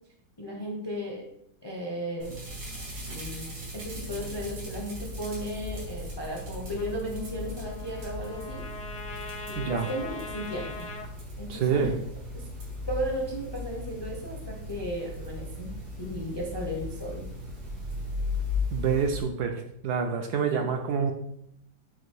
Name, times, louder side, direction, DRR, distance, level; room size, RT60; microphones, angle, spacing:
voice 1, 0.4-1.2 1.6-2.3 3.1-8.6 9.5-10.9 11.4-11.9 12.3-12.4 12.9-15.7 16.0-17.2 20.5-20.6, equal, 25° left, -1 dB, 0.6 m, -35 dB
sound 1, 2.2-19.2, left 2 dB, 90° right, 2.4 m, -37 dB
Trumpet, 6.7-11.1, left 3 dB, 75° left, 0.5 m, -41 dB
voice 2, 9.6-9.9 11.5-11.9 18.7-21.1, right 6 dB, 70° right, 4 dB, 1.1 m, -27 dB
7.9 x 2.7 x 4.7 m, 0.73 s
omnidirectional pair, 2.0 m